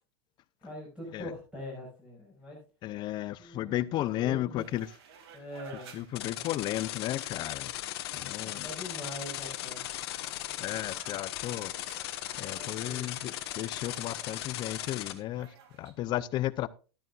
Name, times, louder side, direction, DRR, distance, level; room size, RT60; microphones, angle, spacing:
voice 1, 0.6-2.6 3.4-4.6 5.3-6.0 6.3-6.5 8.4-9.8 12.5-13.1, left 1 dB, 10° right, 6.4 m, -43 dB
voice 2, 2.8-4.9 5.9-7.7 8.1-8.7 10.6-16.7, left 14 dB, 35° left, 0.6 m, -34 dB
sound 1, 4.6-15.9, right 7 dB, 70° right, 2.5 m, -55 dB
sound 2, 6.1-15.1, left 14 dB, 70° left, 1.4 m, -38 dB
14.0 x 12.5 x 2.5 m
supercardioid pair, 140°, 14 cm